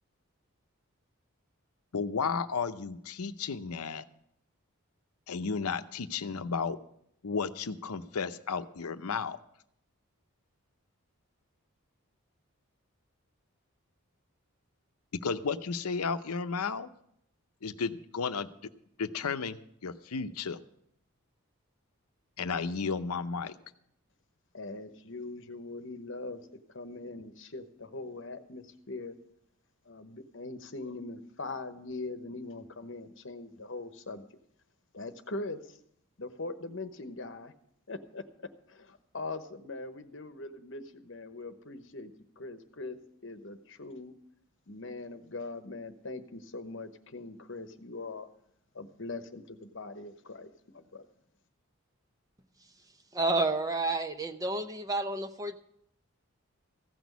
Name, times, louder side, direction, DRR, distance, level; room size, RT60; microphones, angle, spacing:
voice 1, 1.9-4.0 5.3-6.8 7.2-9.4 15.2-16.9 17.6-18.5 19.0-20.6 22.4-23.5, left 5 dB, 90° left, 11 dB, 0.7 m, -33 dB
voice 2, 24.5-26.4 26.7-29.1 29.8-34.3 34.9-35.8 36.2-37.5 37.9-38.2 38.7-44.1 44.7-48.3 48.7-51.1, left 3 dB, 55° left, 9 dB, 1.0 m, -41 dB
voice 3, 53.1-55.6, right 2 dB, 15° right, 8 dB, 0.7 m, -30 dB
15.5 x 6.2 x 9.3 m, 0.71 s
head